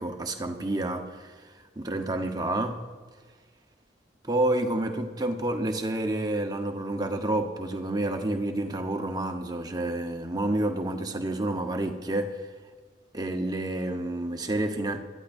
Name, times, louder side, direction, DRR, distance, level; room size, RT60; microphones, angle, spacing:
voice 1, 0.0-1.3 1.8-2.8 4.2-12.4 13.1-15.0, right 1 dB, 20° right, 5 dB, 0.9 m, -29 dB
22.5 x 13.5 x 2.6 m, 1.5 s
head